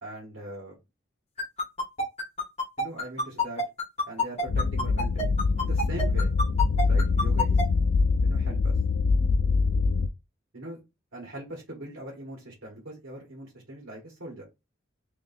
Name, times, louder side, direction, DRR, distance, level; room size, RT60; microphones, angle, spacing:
voice 1, 0.0-0.8 2.8-3.6 4.1-5.3 5.6-6.3 6.8-7.6 8.2-8.8 10.5-10.8 11.1-14.4, right 1 dB, 75° right, -1 dB, 1.6 m, -41 dB
sound 1, 1.4-7.6, left 2 dB, 35° left, 1.1 m, -27 dB
sound 2, 4.5-10.1, left 4 dB, 80° left, 0.4 m, -24 dB
3.0 x 2.9 x 4.1 m, 0.24 s
head